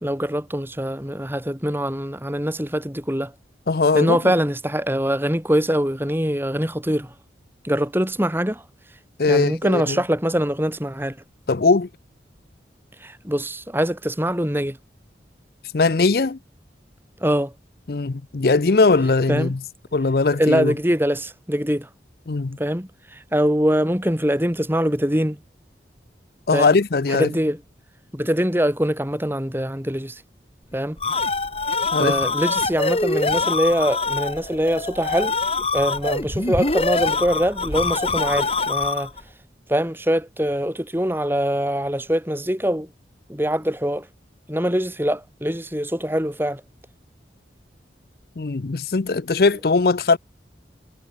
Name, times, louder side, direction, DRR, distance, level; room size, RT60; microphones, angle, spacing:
voice 1, 0.0-3.3 3.9-7.1 7.6-8.6 9.3-11.2 13.0-14.8 17.2-17.5 19.3-19.5 20.4-21.9 22.6-25.4 26.5-26.7 27.1-27.6 28.1-30.2 30.7-31.0 32.0-35.3 35.7-39.1 39.7-42.9 43.3-44.1 44.5-46.6, equal, 10° right, 2.9 m, -23 dB
voice 2, 3.7-4.3 9.2-10.0 11.5-11.9 15.7-16.4 17.9-19.6 19.9-20.7 22.3-22.6 26.5-27.3 31.9-32.2 48.4-50.2, left 3 dB, 55° left, 0.6 m, -20 dB
sound 1, 30.7-39.2, left 3 dB, 35° left, 4.0 m, -24 dB
head